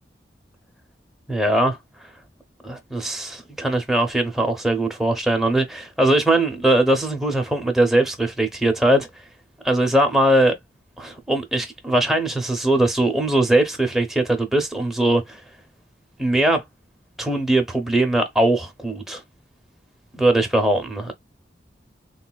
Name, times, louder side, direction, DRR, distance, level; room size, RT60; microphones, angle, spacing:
voice 1, 1.3-1.8 2.6-9.1 9.6-10.5 11.0-15.4 16.2-16.6 17.2-19.2 20.1-21.1, right 1 dB, ahead, 0.6 m, -20 dB
3.6 x 2.3 x 2.2 m
head